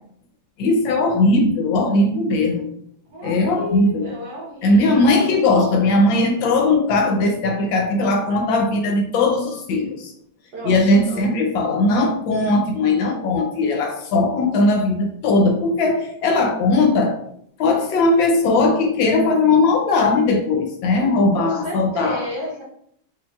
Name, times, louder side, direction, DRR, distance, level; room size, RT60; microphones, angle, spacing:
voice 1, 0.6-2.7 3.2-4.1 4.6-10.1 10.6-17.2 17.6-22.2, left 2 dB, 75° left, 2 dB, 1.3 m, -18 dB
voice 2, 3.1-5.4 10.5-11.3 21.3-22.6, equal, 55° right, -4 dB, 1.4 m, -32 dB
4.7 x 3.2 x 2.3 m, 0.68 s
omnidirectional pair, 2.2 m